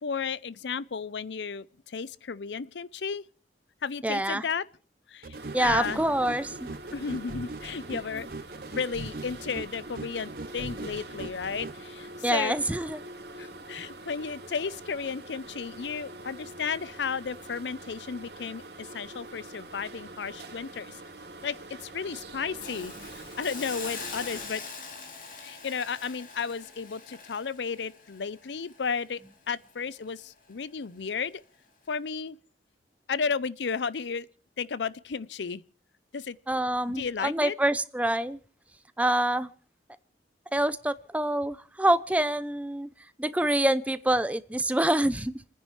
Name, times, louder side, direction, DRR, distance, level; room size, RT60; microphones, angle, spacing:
voice 1, 0.0-3.2 3.8-4.6 5.1-6.0 6.9-8.3 8.7-12.6 13.4-21.0 21.4-22.9 23.4-24.6 25.4-29.2 29.5-31.4 31.9-32.4 33.1-34.3 34.6-35.6 36.1-36.4 37.0-37.5, left 5 dB, 85° left, 0.6 m, -33 dB
voice 2, 4.0-4.4 5.5-6.7 12.2-13.0 36.5-38.4 39.0-39.5 40.5-42.9 43.2-45.3, right 1 dB, 10° right, 0.5 m, -26 dB
sound 1, 5.2-11.8, right 3 dB, 55° right, 0.6 m, -41 dB
sound 2, 5.3-24.5, right 2 dB, 70° right, 3.2 m, -44 dB
Hiss, 22.6-29.6 30.0-30.2, left 5 dB, 50° left, 3.0 m, -43 dB
29.5 x 10.0 x 3.2 m
head